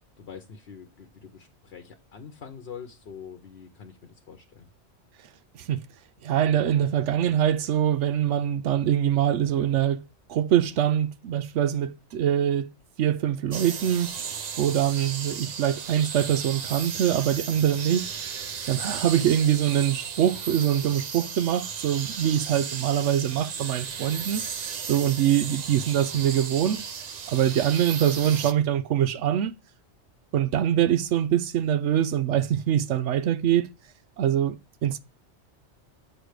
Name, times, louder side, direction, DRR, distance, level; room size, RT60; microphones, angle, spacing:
voice 1, 0.2-4.7, left 7 dB, 60° left, 1.0 m, -44 dB
voice 2, 6.2-10.0 10.3-12.7 13.0-14.1 14.6-18.2 18.7-24.5 24.9-26.8 27.3-29.5 30.3-33.7 34.2-35.0, right 10 dB, 85° right, 1.0 m, -24 dB
sound 1, 13.5-28.5, right 6 dB, 45° right, 0.6 m, -35 dB
8.0 x 3.3 x 6.3 m
omnidirectional pair, 1.2 m